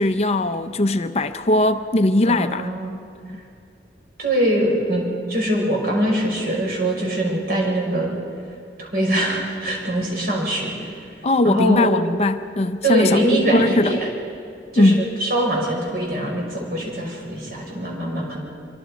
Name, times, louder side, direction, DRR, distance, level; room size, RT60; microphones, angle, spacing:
voice 1, 0.0-2.7 3.3-3.4 11.2-13.2 13.5-14.0 14.8-15.1, left 1 dB, 35° left, 9 dB, 0.6 m, -19 dB
voice 2, 2.3-2.9 4.2-8.1 8.8-10.9 11.4-11.9 12.8-14.1 14.7-14.9 15.2-18.4, right 1 dB, 55° right, -1 dB, 5.8 m, -22 dB
25.5 x 24.0 x 5.1 m, 2.4 s
head